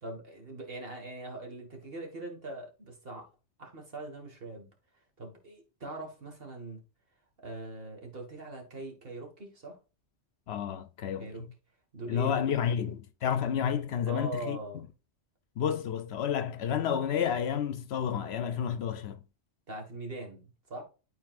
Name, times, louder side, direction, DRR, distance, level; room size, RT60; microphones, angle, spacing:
voice 1, 0.0-3.3 3.6-4.7 5.2-6.8 7.4-9.8 11.2-11.5 11.9-12.8 14.1-14.8 19.7-20.8, right 2 dB, 55° right, 2.0 m, -42 dB
voice 2, 10.5-11.3 12.1-14.6 15.6-19.2, left 8 dB, 70° left, 0.8 m, -30 dB
12.0 x 4.2 x 2.5 m
omnidirectional pair, 1.2 m